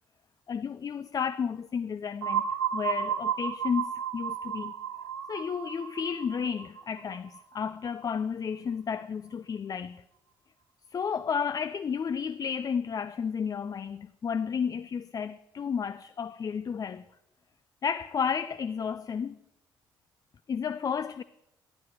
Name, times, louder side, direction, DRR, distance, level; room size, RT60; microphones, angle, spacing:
voice 1, 0.5-4.7 5.3-10.0 10.9-17.0 17.8-19.4 20.5-21.2, left 6 dB, 30° left, 0.4 m, -32 dB
sound 1, 2.2-7.9, right 8 dB, 80° right, 0.6 m, -33 dB
14.5 x 11.0 x 4.8 m
figure-of-eight pair, 45°, 12 cm